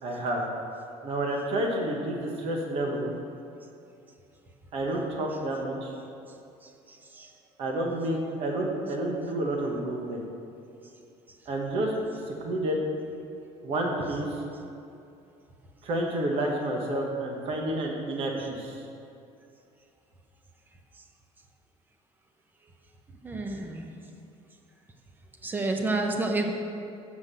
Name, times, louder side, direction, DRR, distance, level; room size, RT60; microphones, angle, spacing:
voice 1, 0.0-0.4 1.0-3.1 4.7-5.9 7.6-10.2 11.5-11.9 12.3-12.8 13.6-14.3 15.8-18.8, right 1 dB, 50° right, 0 dB, 1.3 m, -29 dB
voice 2, 6.6-7.3 23.1-23.9 25.4-26.5, right 2 dB, 15° right, 3 dB, 0.8 m, -30 dB
8.1 x 7.3 x 6.7 m, 2.6 s
cardioid pair, 165°, 12 cm